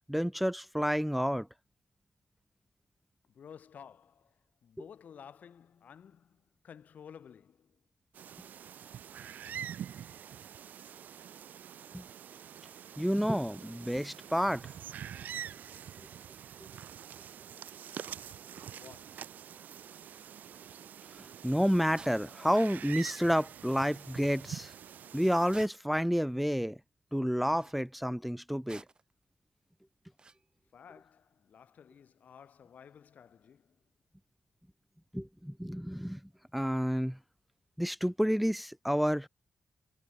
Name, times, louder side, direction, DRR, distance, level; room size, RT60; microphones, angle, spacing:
voice 1, 0.1-1.5 11.9-12.0 13.0-14.7 21.2-24.7 25.1-26.8 27.1-28.8 35.1-36.2 36.5-37.2 37.8-39.3, equal, ahead, 0.5 m, -30 dB
voice 2, 3.3-7.8 18.7-19.4 30.7-33.8, left 7 dB, 70° left, 1.6 m, -54 dB
sound 1, 8.1-25.7, right 9 dB, 90° right, 0.8 m, -46 dB
sound 2, 22.0-22.2 23.4-23.5 23.7-23.9 25.5-26.0 27.4-27.8 28.7-29.1 30.2-30.4, right 4 dB, 30° right, 1.3 m, -52 dB
wide cardioid pair, 125°, 3 cm